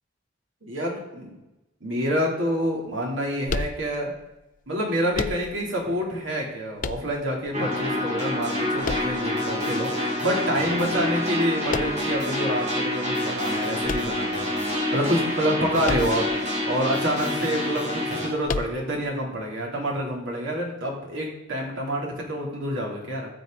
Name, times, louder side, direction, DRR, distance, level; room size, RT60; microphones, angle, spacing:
voice 1, 0.6-1.3 1.8-4.1 4.7-23.3, equal, 75° right, -2 dB, 3.1 m, -27 dB
sound 1, 3.5-4.2 5.1-5.8 6.8-7.5 8.8-9.6 11.7-12.3 13.8-14.7 15.8-16.4 16.7-16.8 18.4-19.1, left 4 dB, 45° left, 0.4 m, -31 dB
sound 2, 7.5-18.3, left 1 dB, 35° right, 2.9 m, -27 dB
14.5 x 7.9 x 3.9 m, 0.96 s
head